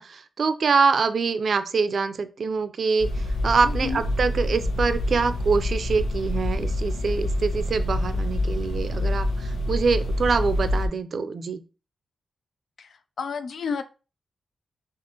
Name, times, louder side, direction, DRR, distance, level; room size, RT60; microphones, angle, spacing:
voice 1, 0.0-3.1 3.4-11.6, right 5 dB, 60° right, 11 dB, 0.4 m, -24 dB
sound 1, 3.0-10.9, left 1 dB, 90° left, 0.9 m, -26 dB
voice 2, 3.6-4.0 12.8-12.9 13.2-13.8, left 5 dB, 65° left, 11 dB, 0.3 m, -30 dB
6.0 x 2.5 x 2.8 m, 0.33 s
cardioid pair, 85°, 0 cm